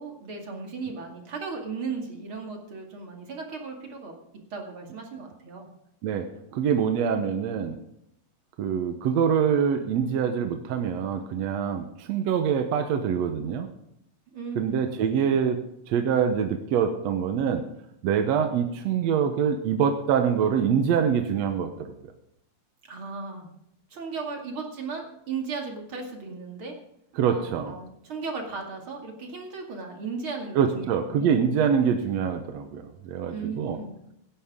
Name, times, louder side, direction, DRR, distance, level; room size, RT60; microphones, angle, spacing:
voice 1, 0.0-4.1 4.5-5.7 14.3-14.8 22.8-23.5 23.9-26.8 27.3-31.3 33.3-33.9, right 4 dB, 45° right, 2 dB, 3.0 m, -36 dB
voice 2, 6.0-7.8 8.6-13.7 14.6-15.6 15.9-17.6 18.0-21.9 27.2-27.7 30.6-33.8, right 7 dB, 70° right, 6 dB, 2.1 m, -25 dB
17.0 x 11.5 x 3.7 m, 0.78 s
omnidirectional pair, 3.3 m